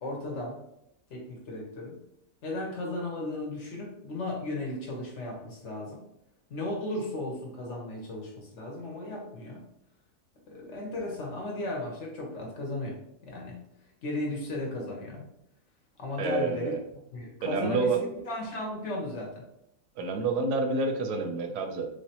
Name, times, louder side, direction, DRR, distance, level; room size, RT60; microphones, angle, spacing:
voice 1, 0.0-0.6 1.1-2.0 2.4-6.0 6.5-9.6 10.5-13.0 13.2-13.6 14.0-15.2 16.0-16.7 17.1-19.3, left 1 dB, 55° left, 0 dB, 1.0 m, -35 dB
voice 2, 16.2-16.8 17.4-18.0 20.0-21.9, right 3 dB, 85° right, 4 dB, 1.2 m, -28 dB
3.2 x 3.2 x 2.8 m, 0.79 s
omnidirectional pair, 1.6 m